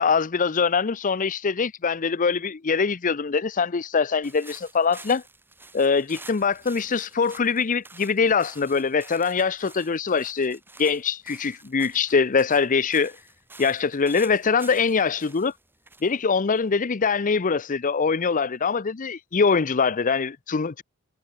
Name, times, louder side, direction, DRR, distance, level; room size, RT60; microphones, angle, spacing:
voice 1, 0.0-5.2 5.7-13.1 13.6-15.5 16.0-20.8, left 5 dB, 35° left, 0.6 m, -23 dB
sound 1, 4.2-17.0, right 2 dB, 10° right, 7.4 m, -49 dB
head